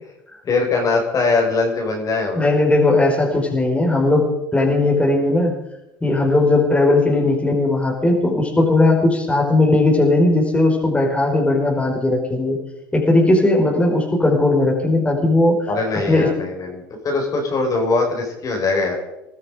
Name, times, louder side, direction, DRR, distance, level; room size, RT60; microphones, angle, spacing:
voice 1, 0.4-2.5 15.7-18.9, left 3 dB, 35° left, 1 dB, 5.3 m, -21 dB
voice 2, 2.4-4.3 4.5-5.5 6.0-12.6 12.9-15.7 16.1-16.3, left 2 dB, 10° left, 0 dB, 5.2 m, -17 dB
21.0 x 13.0 x 5.2 m, 0.90 s
hypercardioid pair, 80°, 10 cm